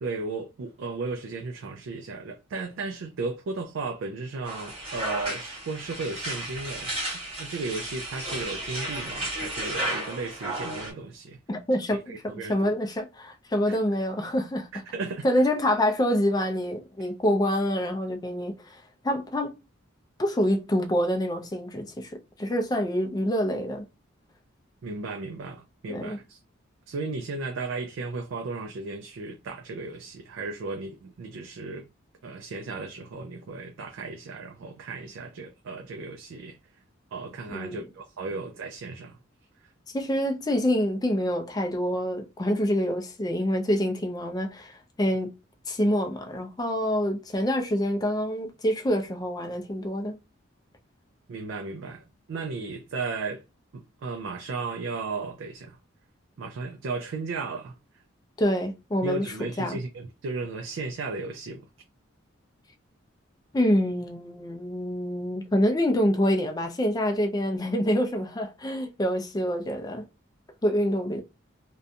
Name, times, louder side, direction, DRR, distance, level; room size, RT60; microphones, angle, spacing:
voice 1, 0.0-11.4 11.9-12.7 13.7-13.8 14.7-15.3 24.8-26.4 26.9-31.9 32.2-36.6 37.1-39.2 51.3-53.4 53.7-55.8 56.4-57.8 59.0-61.7, right 3 dB, 70° right, 0.3 m, -35 dB
sound 1, 4.4-10.9, right 1 dB, 30° right, 1.0 m, -33 dB
voice 2, 11.5-14.7 15.2-19.6 20.2-23.8 25.9-26.2 37.5-37.8 39.9-45.3 45.7-50.2 58.4-59.8 63.5-70.0 70.6-71.2, equal, 20° left, 0.4 m, -26 dB
2.5 x 2.2 x 2.6 m
head